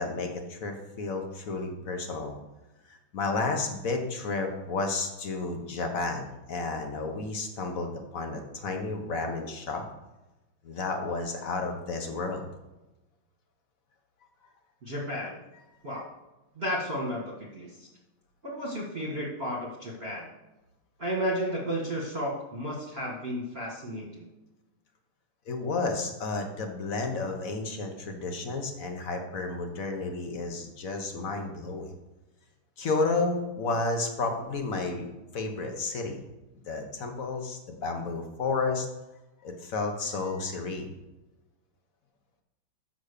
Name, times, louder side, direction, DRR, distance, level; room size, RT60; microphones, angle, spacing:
voice 1, 0.0-2.3 2.9-9.8 10.6-12.4 25.5-31.9 32.8-36.2 36.7-38.9 39.4-40.9, left 3 dB, 50° left, 4 dB, 1.2 m, -32 dB
voice 2, 14.8-15.4 15.8-16.1 16.5-17.9 18.4-20.3 21.0-24.2, equal, 30° right, -4 dB, 1.5 m, -33 dB
6.7 x 6.1 x 6.6 m, 1.0 s
omnidirectional pair, 2.4 m